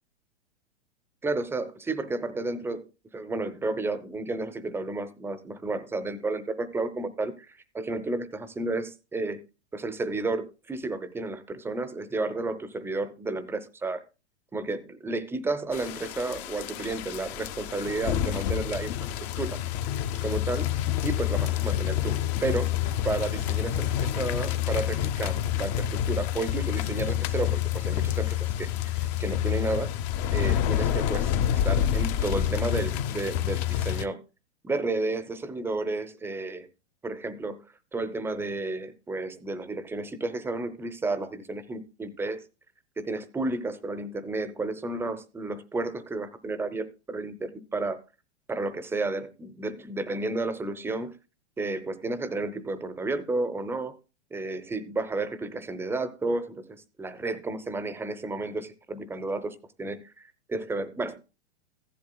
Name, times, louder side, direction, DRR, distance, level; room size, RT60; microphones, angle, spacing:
voice 1, 1.2-9.4 9.7-14.0 14.5-18.9 19.4-19.6 20.2-20.7 21.0-22.8 23.0-28.7 29.0-30.0 30.3-34.2 34.6-36.7 37.0-37.6 37.9-42.4 43.0-48.0 48.5-51.2 51.6-54.0 54.3-61.2, right 2 dB, 5° right, 0.6 m, -32 dB
sound 1, 15.7-34.1, left 11 dB, 35° left, 0.7 m, -28 dB
15.0 x 11.0 x 2.2 m
figure-of-eight pair, 110°, 34 cm